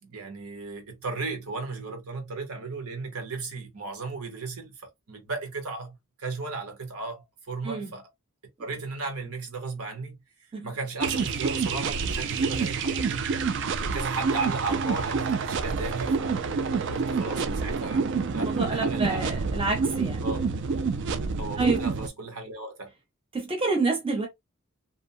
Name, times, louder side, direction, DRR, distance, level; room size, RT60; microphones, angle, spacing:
voice 1, 0.0-8.1 8.6-10.2 10.6-13.3 13.8-16.4 16.9-18.0 18.3-19.3 20.2-20.4 21.4-22.9, right 3 dB, 85° right, 1.1 m, -35 dB
sound 1, 11.0-22.1, right 5 dB, 55° right, 0.3 m, -28 dB
voice 2, 18.3-20.2 21.6-21.8 23.3-24.3, right 3 dB, 25° right, 0.7 m, -28 dB
2.7 x 2.1 x 2.6 m
head